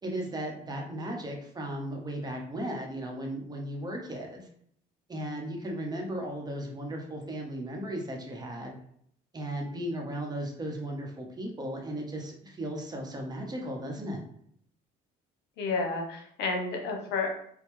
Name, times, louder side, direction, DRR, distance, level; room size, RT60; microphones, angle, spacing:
voice 1, 0.0-4.5 5.1-8.7 9.3-14.2, right 1 dB, 25° right, 1 dB, 1.0 m, -36 dB
voice 2, 15.6-17.3, left 3 dB, 80° left, 3 dB, 1.0 m, -31 dB
5.3 x 2.3 x 3.1 m, 0.67 s
cardioid pair, 110°, 17 cm